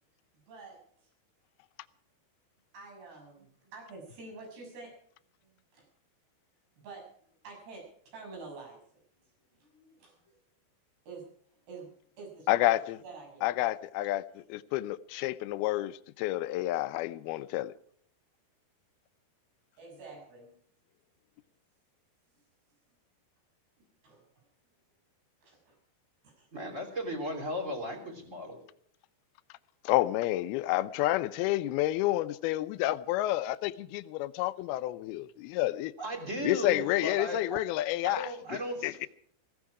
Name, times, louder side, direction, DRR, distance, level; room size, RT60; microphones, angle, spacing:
voice 1, 0.5-0.8 2.7-4.9 5.4-5.8 6.8-7.0 7.4-8.8 9.5-10.3 11.1-11.3 11.7-11.9 12.2-13.5 19.8-20.6 24.0-24.3 25.4-25.8 26.2-26.5, right 3 dB, 70° right, 8.6 m, -48 dB
voice 2, 12.5-13.0 13.4-17.7 29.8-35.9 36.4-39.1, left 16 dB, 80° left, 2.5 m, -30 dB
voice 3, 26.5-28.6 36.0-37.6 38.0-39.1, equal, 20° right, 3.2 m, -36 dB
16.5 x 15.5 x 4.8 m
omnidirectional pair, 4.9 m